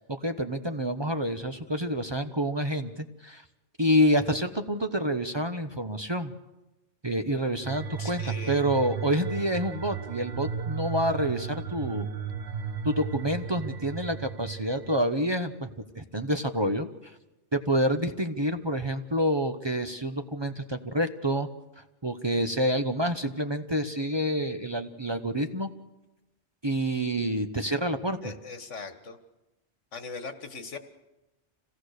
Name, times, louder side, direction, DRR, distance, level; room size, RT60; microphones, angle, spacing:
voice 1, 0.0-3.4 3.8-6.3 7.0-12.1 12.8-15.7 16.0-16.9 17.5-21.5 22.0-25.7 26.6-28.3, equal, 25° right, 7 dB, 0.9 m, -28 dB
sound 1, 7.6-15.0, right 7 dB, 65° right, 1.2 m, -35 dB
voice 2, 8.0-8.6 28.2-29.2 29.9-30.8, left 4 dB, 80° left, 8 dB, 1.8 m, -40 dB
26.5 x 17.0 x 6.6 m, 1.0 s
omnidirectional pair, 1.2 m